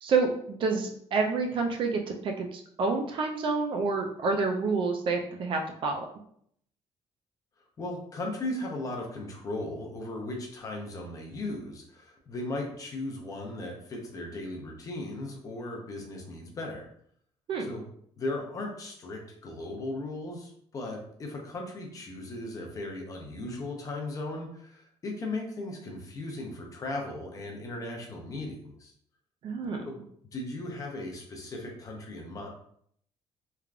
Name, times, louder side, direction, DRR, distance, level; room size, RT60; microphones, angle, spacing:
voice 1, 0.0-6.1 17.5-17.7 29.4-29.8, right 4 dB, 45° right, 3 dB, 0.4 m, -28 dB
voice 2, 7.8-16.8 17.7-17.8 18.2-28.9 29.9-30.0 30.3-32.5, left 2 dB, 30° left, 1 dB, 0.5 m, -37 dB
3.2 x 2.3 x 2.4 m, 0.65 s
cardioid pair, 175°, 12 cm